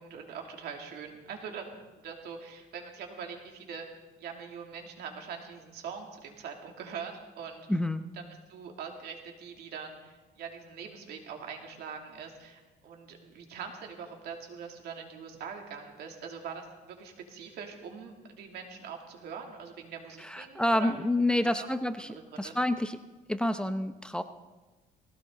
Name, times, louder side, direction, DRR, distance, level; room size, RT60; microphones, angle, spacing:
voice 1, 0.0-3.9 4.2-7.7 8.5-20.9 21.4-21.5 22.0-22.5, right 6 dB, 75° right, 2 dB, 2.9 m, -43 dB
voice 2, 7.7-8.0 20.2-23.0 23.3-24.2, left 1 dB, 5° left, 9 dB, 0.8 m, -28 dB
19.0 x 16.5 x 4.0 m, 1.2 s
cardioid pair, 110°, 17 cm